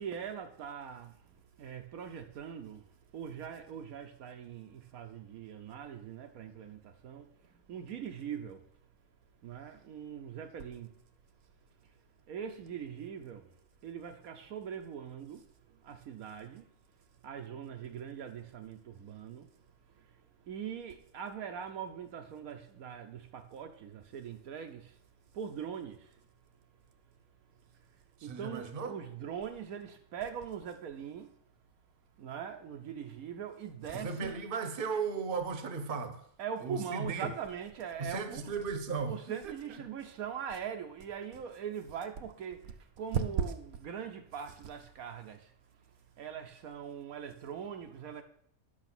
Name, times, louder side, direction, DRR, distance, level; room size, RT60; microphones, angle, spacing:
voice 1, 0.0-2.9 3.1-8.6 9.4-10.9 12.3-13.5 13.8-16.7 17.2-19.5 19.9-20.2 20.5-25.0 25.3-26.2 28.2-31.4 32.2-34.4 36.4-38.6 39.1-45.5 46.2-48.2, right 8 dB, 75° right, 1.2 m, -41 dB
voice 2, 28.2-28.9 33.9-36.2 36.6-37.3 38.0-39.8, right 5 dB, 40° right, 1.1 m, -36 dB
9.0 x 6.4 x 5.9 m
omnidirectional pair, 1.5 m